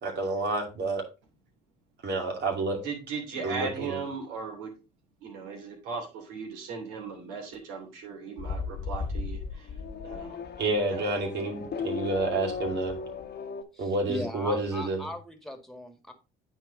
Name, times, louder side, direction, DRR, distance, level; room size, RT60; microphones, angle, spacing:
voice 1, 0.0-1.1 2.0-2.8 3.4-4.0 10.6-13.0 13.8-15.0, right 2 dB, 55° right, 1 dB, 2.5 m, -29 dB
voice 2, 2.8-4.7 5.2-9.7 10.0-10.3 10.9-11.2, right 5 dB, 80° right, 2 dB, 2.8 m, -37 dB
Race car auto racing / Accelerating revving vroom, 8.4-13.6, left 5 dB, 50° left, 1.3 m, -36 dB
voice 3, 13.7-16.1, equal, ahead, 7 dB, 2.0 m, -38 dB
9.0 x 4.5 x 4.0 m, 0.29 s
hypercardioid pair, 65°, 21 cm